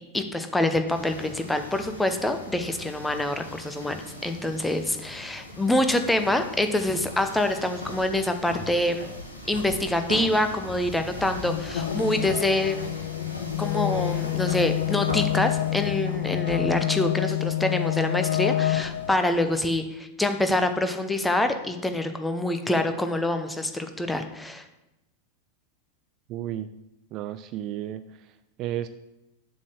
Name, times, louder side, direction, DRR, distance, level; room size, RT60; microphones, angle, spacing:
voice 1, 0.1-9.1 9.5-13.0 13.6-24.6, left 1 dB, 5° left, 7 dB, 0.7 m, -26 dB
sound 1, 0.9-19.7, left 1 dB, 85° left, 1.3 m, -40 dB
sound 2, 11.4-19.2, left 14 dB, 60° left, 0.4 m, -27 dB
voice 2, 26.3-26.7 27.1-28.9, right 12 dB, 40° right, 11 dB, 0.3 m, -33 dB
7.3 x 3.9 x 6.5 m, 0.95 s
figure-of-eight pair, 90°, 0 cm